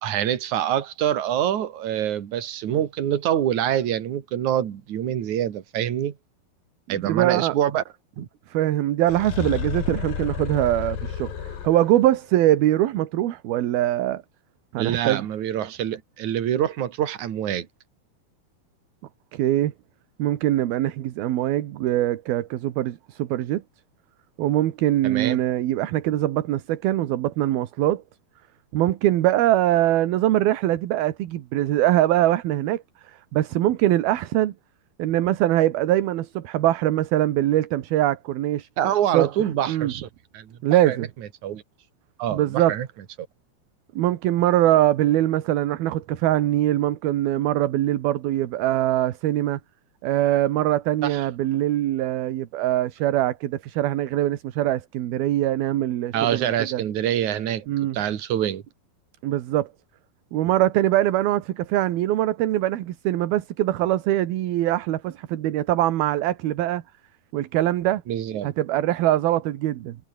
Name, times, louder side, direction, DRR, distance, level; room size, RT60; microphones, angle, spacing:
voice 1, 0.0-6.1 6.9-7.8 8.2-8.3 14.8-17.7 25.0-25.4 38.8-40.1 40.3-40.6 40.9-41.1 41.4-41.6 42.2-42.9 51.0-51.2 56.1-57.7 57.9-58.6 68.1-68.5, right 10 dB, 55° right, 3.1 m, -25 dB
voice 2, 6.9-7.6 8.5-14.2 14.7-15.3 19.3-19.7 20.2-23.6 24.4-28.0 28.7-34.5 35.0-38.7 39.1-39.3 39.7-39.9 40.6-41.1 42.3-42.8 44.0-49.6 50.0-56.8 57.7-58.0 59.2-59.7 60.3-66.8 67.3-68.0 68.4-70.0, right 14 dB, 75° right, 3.2 m, -22 dB
sound 1, 9.1-12.1, left 8 dB, 65° left, 4.3 m, -31 dB
omnidirectional pair, 4.5 m